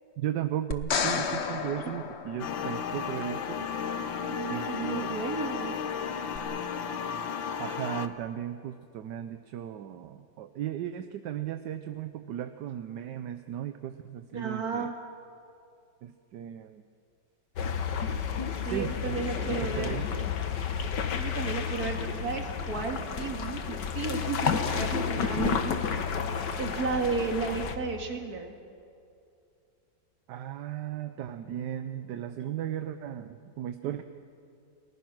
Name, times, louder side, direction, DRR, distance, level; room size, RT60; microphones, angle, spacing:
voice 1, 0.2-3.7 4.5-5.1 7.6-14.9 16.0-16.8 18.6-20.3 30.3-34.0, right 11 dB, 70° right, 9 dB, 1.3 m, -36 dB
sound 1, 0.7-3.0 6.3-6.4, left 6 dB, 45° left, 1.0 m, -31 dB
sound 2, 2.4-8.1, left 7 dB, 85° left, 1.7 m, -34 dB
voice 2, 4.3-5.8 14.3-14.9 18.6-19.9 21.2-26.0 26.6-28.5 32.4-32.5 33.8-34.0, right 5 dB, 50° right, 4 dB, 2.6 m, -33 dB
sound 3, 17.6-27.7, left 6 dB, 65° left, 1.9 m, -31 dB
29.5 x 20.0 x 6.1 m, 2.5 s
omnidirectional pair, 2.1 m